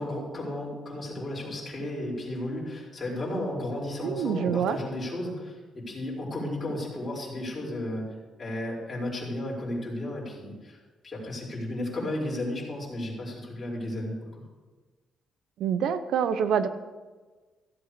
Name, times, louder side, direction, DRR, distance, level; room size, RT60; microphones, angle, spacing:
voice 1, 0.0-8.0 8.4-10.8 11.0-14.4, left 1 dB, 25° left, -5 dB, 4.8 m, -33 dB
voice 2, 4.0-4.8 15.6-16.7, right 8 dB, 70° right, 12 dB, 0.8 m, -26 dB
14.5 x 8.0 x 6.8 m, 1.3 s
cardioid pair, 135°, 0 cm